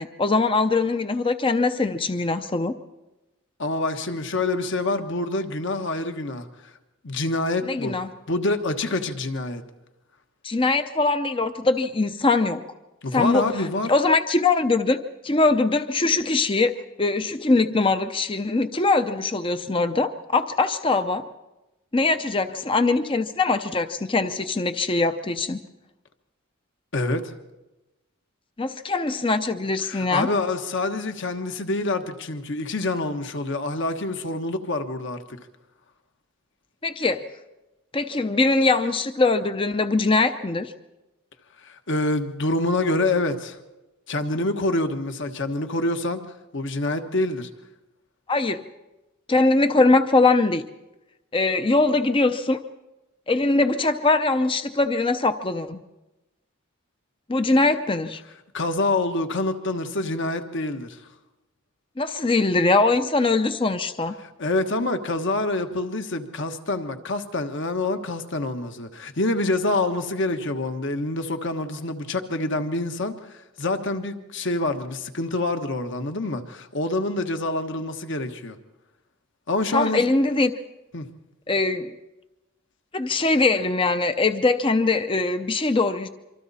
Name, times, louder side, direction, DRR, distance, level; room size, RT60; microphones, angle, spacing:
voice 1, 0.0-2.7 7.6-8.1 10.4-12.6 13.1-21.3 21.9-25.6 28.6-30.3 36.8-37.2 37.9-40.7 48.3-48.6 49.3-50.6 51.3-52.6 53.3-55.8 57.3-58.2 62.0-64.1 79.7-80.5 81.5-81.9 82.9-86.1, left 3 dB, 25° left, 9 dB, 0.6 m, -22 dB
voice 2, 3.6-6.7 7.0-8.0 8.3-9.6 13.0-13.9 26.9-27.3 29.8-35.4 41.6-43.6 44.1-46.2 46.5-47.5 58.5-61.0 64.2-78.6 79.5-80.1 80.9-81.1, left 2 dB, 60° left, 7 dB, 1.4 m, -26 dB
26.0 x 25.0 x 4.2 m, 1.0 s
head